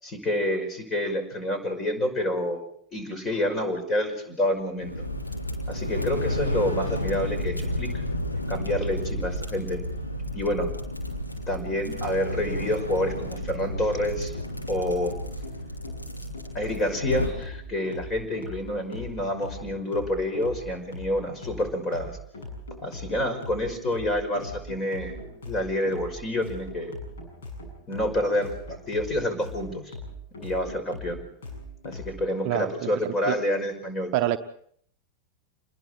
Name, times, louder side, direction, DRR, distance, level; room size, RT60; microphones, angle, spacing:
voice 1, 0.0-2.6 2.9-4.9 5.7-8.0 8.5-9.8 10.3-10.7 11.5-14.3 14.7-15.1 16.5-22.2 22.8-25.2 25.5-26.9 27.9-30.0 30.4-31.2 31.8-34.1, left 1 dB, 25° left, 8 dB, 5.5 m, -28 dB
sound 1, 4.8-17.3, left 1 dB, 85° left, 3.4 m, -31 dB
sound 2, 12.9-32.1, left 2 dB, 60° left, 7.2 m, -41 dB
voice 2, 32.5-33.4 34.1-34.4, right 13 dB, 45° right, 9 dB, 0.8 m, -27 dB
28.0 x 21.0 x 4.5 m, 0.63 s
figure-of-eight pair, 90°, 0 cm